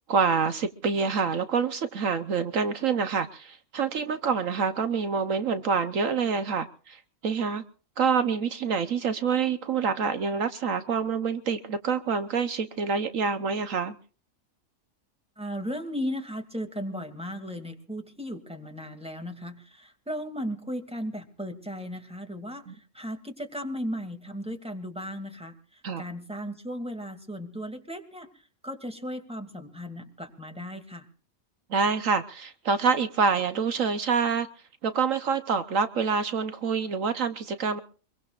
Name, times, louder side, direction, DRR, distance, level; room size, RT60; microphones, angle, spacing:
voice 1, 0.1-7.6 8.0-13.9 22.7-22.8 25.8-26.0 31.7-34.5 34.8-37.8, right 5 dB, 70° right, 1.3 m, -26 dB
voice 2, 15.4-22.6 22.9-28.3 28.6-31.1, equal, 5° right, 2.5 m, -36 dB
24.5 x 22.5 x 2.5 m
omnidirectional pair, 1.4 m